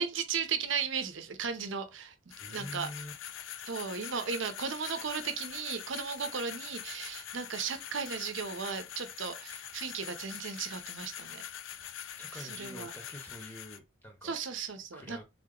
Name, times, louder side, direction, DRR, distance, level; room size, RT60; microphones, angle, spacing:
voice 1, 0.0-2.9 3.7-11.4 12.3-12.9 14.2-15.2, right 6 dB, 75° right, 0.7 m, -36 dB
sound 1, 2.3-13.8, left 10 dB, 80° left, 0.4 m, -44 dB
voice 2, 2.4-3.1 12.2-14.4 14.9-15.2, equal, 10° left, 0.8 m, -46 dB
3.8 x 2.9 x 3.8 m
head